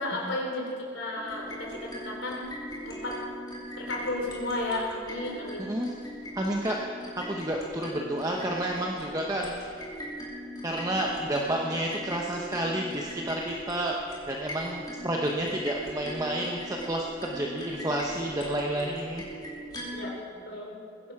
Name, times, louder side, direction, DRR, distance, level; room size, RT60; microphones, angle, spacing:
voice 1, 0.0-2.4 2.8-3.2 3.7-5.7 19.9-20.8, left 2 dB, 70° left, -1 dB, 3.5 m, -33 dB
sound 1, 1.1-20.1, equal, 20° left, 2.8 m, -40 dB
voice 2, 5.6-5.9 6.4-9.9 10.6-14.0 14.3-19.4, right 1 dB, 20° right, -1 dB, 0.9 m, -30 dB
21.0 x 11.0 x 4.8 m, 2.5 s
head